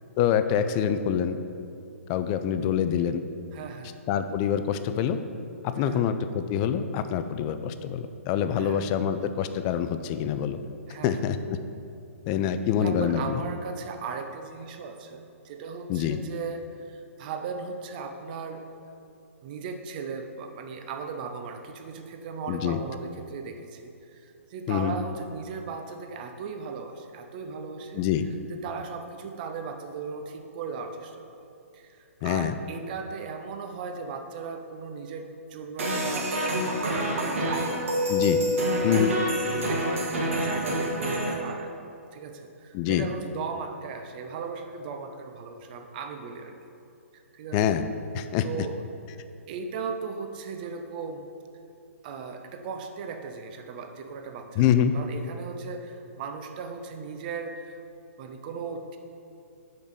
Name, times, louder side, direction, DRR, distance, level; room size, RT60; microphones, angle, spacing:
voice 1, 0.2-1.4 2.1-3.2 4.1-5.2 5.7-10.6 11.0-11.6 12.3-13.4 15.9-16.2 22.5-22.8 24.7-24.9 27.9-28.3 32.2-32.5 38.1-38.4 38.8-39.1 42.7-43.1 47.5-47.9 48.1-48.4 54.6-54.9, left 9 dB, 30° left, 10 dB, 0.3 m, -25 dB
voice 2, 3.5-4.0 5.8-6.1 8.6-8.8 10.9-11.2 12.8-18.6 19.4-28.0 28.5-31.4 31.7-36.3 36.6-38.1 38.8-39.1 39.5-41.8 42.1-46.6 47.3-47.6 48.4-48.8 49.5-51.2 52.0-54.7 54.9-57.8 58.2-59.0, right 5 dB, 35° right, 5 dB, 0.6 m, -37 dB
sound 1, 35.8-41.3, equal, 60° right, 1.5 m, -27 dB
5.2 x 5.2 x 6.2 m, 2.6 s
figure-of-eight pair, 125°, 8 cm